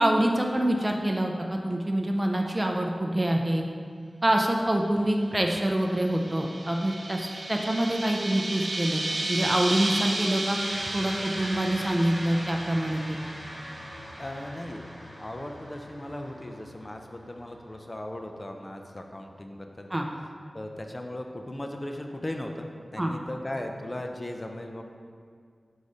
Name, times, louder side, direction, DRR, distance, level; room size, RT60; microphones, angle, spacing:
voice 1, 0.0-3.6 4.2-10.6 10.9-13.2 19.9-20.1 23.0-23.1, right 1 dB, 25° right, 1 dB, 0.5 m, -26 dB
sound 1, 5.7-14.0, right 2 dB, 70° right, 0.6 m, -34 dB
sound 2, 10.5-19.2, equal, 15° left, 1.5 m, -42 dB
voice 2, 14.2-14.9 15.2-19.9 20.5-24.8, left 1 dB, 30° left, 3 dB, 0.6 m, -37 dB
6.5 x 4.9 x 4.1 m, 2.1 s
wide cardioid pair, 60°, 0 cm